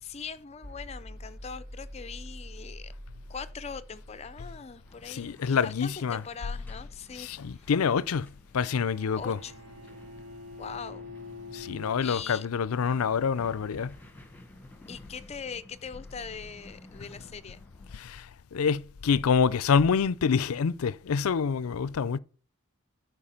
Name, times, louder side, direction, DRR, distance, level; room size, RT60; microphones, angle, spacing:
voice 1, 0.0-2.9 3.3-7.7 9.2-9.6 10.6-11.1 12.0-12.5 14.9-17.6, left 6 dB, 30° left, 0.4 m, -41 dB
sound 1, 0.6-16.5, equal, 40° right, 1.0 m, -50 dB
sound 2, 4.8-18.0, left 1 dB, 10° left, 1.1 m, -54 dB
voice 2, 5.1-6.2 7.2-8.3 8.5-9.4 11.5-14.0 17.9-22.2, left 6 dB, 85° left, 0.5 m, -27 dB
Bowed string instrument, 8.5-12.7, left 3 dB, 90° right, 3.6 m, -46 dB
13.5 x 4.7 x 5.7 m
head